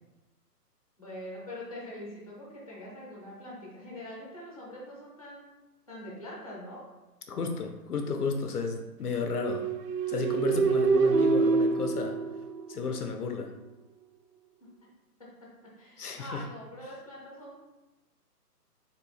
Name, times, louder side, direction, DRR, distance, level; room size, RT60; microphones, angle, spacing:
voice 1, 1.0-5.5 5.9-6.8 14.6-14.7 15.2-17.6, left 1 dB, 25° left, -4 dB, 0.7 m, -43 dB
voice 2, 7.3-9.7 10.1-12.2 12.7-13.5 16.0-16.4, left 4 dB, 70° left, 4 dB, 0.6 m, -32 dB
sound 1, 9.2-13.0, right 4 dB, 80° right, 0.6 m, -26 dB
3.5 x 2.8 x 4.0 m, 1.0 s
hypercardioid pair, 175°, 48 cm